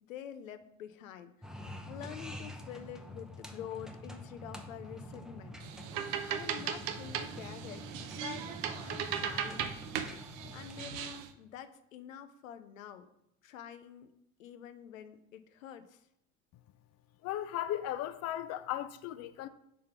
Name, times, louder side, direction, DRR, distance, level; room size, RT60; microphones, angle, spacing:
voice 1, 0.1-6.0 6.3-7.9 8.2-9.7 10.5-13.1 13.4-14.1 14.4-16.1, left 9 dB, 90° left, 0.7 m, -47 dB
sound 1, 1.4-10.9, left 1 dB, ahead, 0.8 m, -47 dB
sound 2, 5.6-11.3, right 8 dB, 60° right, 0.8 m, -38 dB
voice 2, 17.2-19.5, left 12 dB, 40° left, 0.5 m, -36 dB
5.1 x 4.0 x 5.8 m
hypercardioid pair, 85°, 39 cm